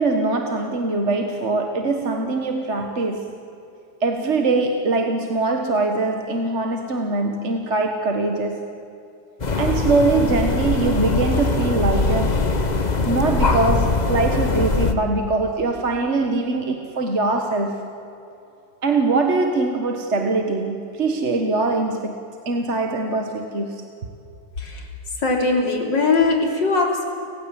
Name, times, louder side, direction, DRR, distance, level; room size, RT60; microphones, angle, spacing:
voice 1, 0.0-3.4 4.0-8.6 9.6-12.4 13.0-17.9 18.8-23.9, right 3 dB, 40° right, 4 dB, 1.7 m, -22 dB
sound 1, 9.4-14.9, left 3 dB, 25° left, 1.1 m, -21 dB
voice 2, 24.6-24.9 25.2-27.0, left 3 dB, 65° left, 2 dB, 3.8 m, -20 dB
30.0 x 16.0 x 8.7 m, 2.7 s
omnidirectional pair, 2.1 m